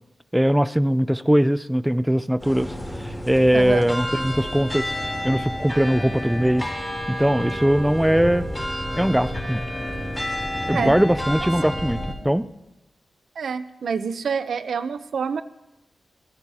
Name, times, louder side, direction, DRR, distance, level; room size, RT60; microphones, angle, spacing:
voice 1, 0.3-6.7 7.1-8.5 8.9-9.6 10.7-12.4, equal, 5° right, 15 dB, 0.4 m, -21 dB
sound 1, 2.4-12.1, equal, 15° left, 3.2 m, -30 dB
voice 2, 3.5-3.8 10.7-10.9 11.4-11.5 13.4-15.4, right 6 dB, 85° right, 13 dB, 0.6 m, -27 dB
24.5 x 16.5 x 2.8 m, 0.95 s
wide cardioid pair, 90°, 0 cm